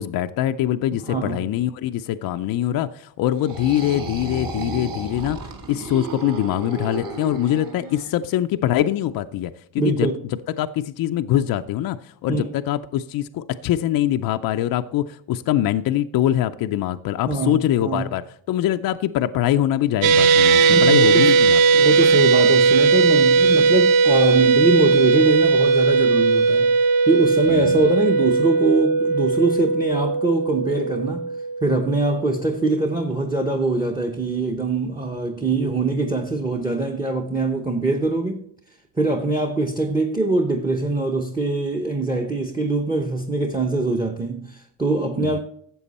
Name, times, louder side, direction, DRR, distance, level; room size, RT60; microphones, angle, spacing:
voice 1, 0.0-10.1 10.6-18.2 18.5-21.6 27.5-27.9 45.2-45.4, left 12 dB, 50° left, 0.5 m, -23 dB
voice 2, 1.1-1.4 9.8-10.2 12.3-12.5 17.3-18.0 20.7-21.2 21.7-26.8 27.1-31.2 31.6-38.4 39.0-45.4, right 3 dB, 10° right, 0.8 m, -23 dB
sound 1, 3.3-8.1, right 3 dB, 45° right, 2.2 m, -33 dB
sound 2, 20.0-32.4, right 4 dB, 70° right, 1.0 m, -17 dB
12.5 x 7.7 x 4.1 m
cardioid pair, 125°, 47 cm